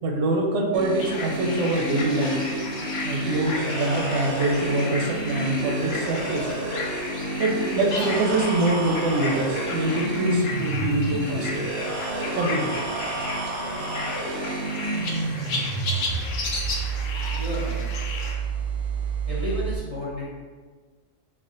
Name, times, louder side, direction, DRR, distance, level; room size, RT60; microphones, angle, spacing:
voice 1, 0.0-2.6 3.0-6.5 7.4-11.7 12.4-12.7, right 2 dB, 85° right, 1 dB, 1.0 m, -24 dB
sound 1, 0.7-19.8, right 3 dB, 60° right, 0.6 m, -30 dB
sound 2, 1.0-18.3, left 3 dB, 75° left, 0.9 m, -34 dB
voice 2, 17.3-17.9 19.3-20.3, left 2 dB, 45° left, -7 dB, 0.5 m, -32 dB
3.5 x 2.1 x 3.7 m, 1.5 s
omnidirectional pair, 1.3 m